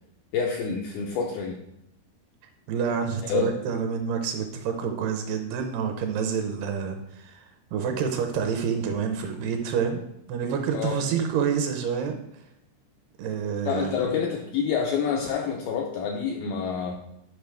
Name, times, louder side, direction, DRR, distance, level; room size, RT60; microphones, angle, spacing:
voice 1, 0.3-1.6 3.2-3.5 10.7-11.0 13.6-17.0, left 6 dB, 85° left, 1 dB, 2.1 m, -27 dB
voice 2, 2.7-10.0 10.3-12.2 13.2-14.1, right 6 dB, 80° right, 5 dB, 2.6 m, -28 dB
9.2 x 5.3 x 3.4 m, 0.83 s
omnidirectional pair, 5.0 m